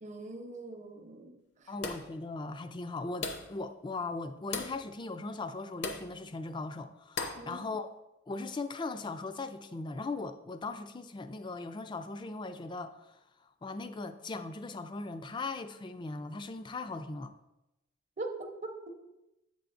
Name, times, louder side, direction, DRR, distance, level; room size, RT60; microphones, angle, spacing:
voice 1, 0.0-1.4 1.6-1.7 7.4-7.7 18.2-18.4 18.6-18.7, right 2 dB, 35° right, 0.7 m, -41 dB
voice 2, 1.7-7.9 8.3-13.2 13.6-17.3, left 3 dB, 25° left, 0.3 m, -39 dB
sound 1, 1.8-2.2 3.2-3.6 4.5-4.8 5.8-6.1 7.2-7.5, left 4 dB, 60° left, 0.7 m, -37 dB
8.2 x 6.9 x 2.5 m
head